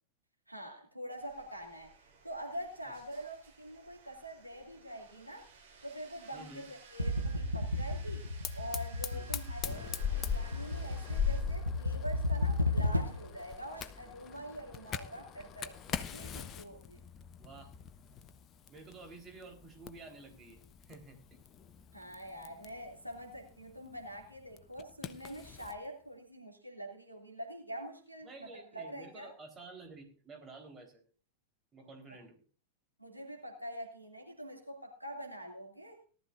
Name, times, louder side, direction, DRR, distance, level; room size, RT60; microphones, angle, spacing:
voice 1, 0.5-1.9 2.2-5.5 5.8-8.2 8.5-17.0 21.9-29.3 32.1-32.2 33.0-36.0, equal, 90° right, 1 dB, 2.7 m, -45 dB
sound 1, 1.2-11.4, right 5 dB, 50° right, 7.8 m, -57 dB
voice 2, 6.3-6.6 9.1-9.3 17.4-17.7 18.7-21.4 28.2-31.0 31.7-32.4, right 3 dB, 20° right, 3 dB, 4.0 m, -51 dB
sound 2, 7.0-13.4, left 2 dB, 90° left, 0.7 m, -34 dB
Fire, 8.4-25.8, left 8 dB, 30° left, 0.9 m, -42 dB
18.5 x 13.0 x 2.6 m, 0.40 s
figure-of-eight pair, 90°, 0 cm